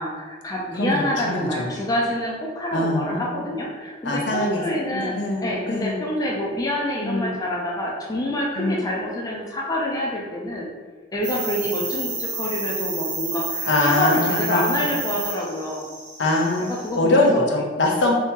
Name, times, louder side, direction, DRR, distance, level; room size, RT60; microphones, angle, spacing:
voice 1, 0.0-10.7 11.1-15.9 16.6-17.4, left 1 dB, 20° left, -3 dB, 0.4 m, -27 dB
voice 2, 0.8-1.7 2.7-3.3 4.0-6.0 7.0-7.3 8.6-8.8 13.7-14.6 16.2-16.7 17.0-18.1, left 2 dB, 70° left, 0 dB, 0.6 m, -23 dB
sound 1, 11.2-17.0, right 3 dB, 65° right, 0.9 m, -30 dB
2.7 x 2.7 x 3.6 m, 1.4 s
head